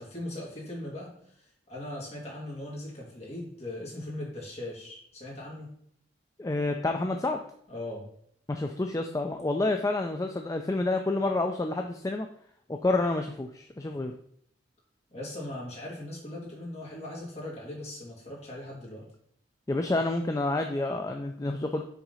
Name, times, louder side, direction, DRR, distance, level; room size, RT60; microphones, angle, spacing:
voice 1, 0.0-5.7 7.7-8.0 15.1-19.1, left 1 dB, 35° left, -5 dB, 2.5 m, -39 dB
voice 2, 6.4-7.4 8.5-12.3 12.7-14.1 19.7-21.8, left 2 dB, 20° left, 4 dB, 0.4 m, -29 dB
5.9 x 3.7 x 5.5 m, 0.67 s
head